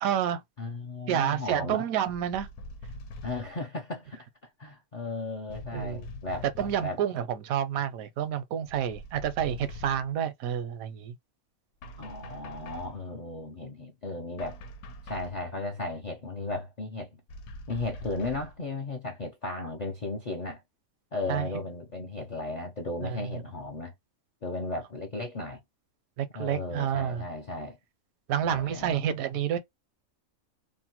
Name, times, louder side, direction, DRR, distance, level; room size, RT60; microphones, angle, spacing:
voice 1, 0.0-0.4 1.1-2.5 5.7-6.0 6.6-11.1 21.3-21.5 23.0-23.3 26.2-27.2 28.3-29.6, right 9 dB, 80° right, 1.0 m, -29 dB
voice 2, 0.6-1.9 3.2-4.3 4.6-6.5 6.8-7.0 12.0-14.6 15.0-17.1 17.7-20.6 21.1-23.9 24.4-25.6 26.3-27.8 28.4-29.1, left 2 dB, 60° left, 0.4 m, -35 dB
sound 1, 2.1-3.6 5.5-6.9 8.7-10.1 11.8-13.0 14.4-15.4 17.3-18.6, left 1 dB, 85° left, 1.1 m, -43 dB
2.7 x 2.1 x 2.9 m
omnidirectional pair, 1.5 m